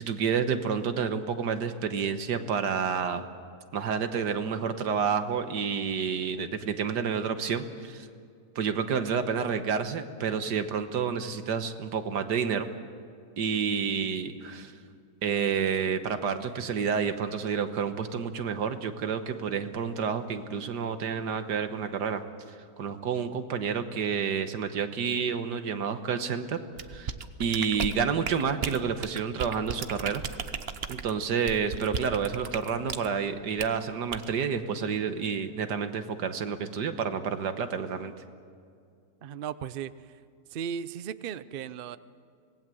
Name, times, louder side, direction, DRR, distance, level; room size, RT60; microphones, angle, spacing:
voice 1, 0.0-3.2 3.7-8.1 8.6-12.7 13.4-14.7 15.2-22.2 22.5-26.6 26.9-27.1 27.4-30.2 30.9-38.1, right 6 dB, 80° right, 9 dB, 1.8 m, -29 dB
sound 1, 26.8-33.1 33.6-33.8 34.1-34.3, right 6 dB, 45° right, 0.9 m, -35 dB
voice 2, 39.2-39.9 40.5-42.0, right 8 dB, 60° right, 15 dB, 0.5 m, -36 dB
25.5 x 19.5 x 7.7 m, 2.3 s
omnidirectional pair, 1.8 m